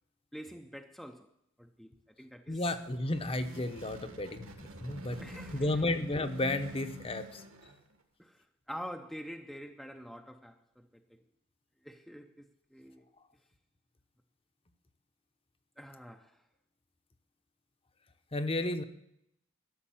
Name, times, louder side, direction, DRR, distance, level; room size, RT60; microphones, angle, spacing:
voice 1, 0.3-1.3 1.6-2.8 5.2-5.8 8.2-10.9 11.8-13.1 15.8-16.4, equal, ahead, 0.6 m, -46 dB
voice 2, 2.5-4.5 4.8-5.2 5.5-7.4 18.3-18.8, left 2 dB, 25° left, 0.8 m, -32 dB
sound 1, 2.7-8.0, equal, 70° right, 1.8 m, -48 dB
13.0 x 6.6 x 9.0 m
head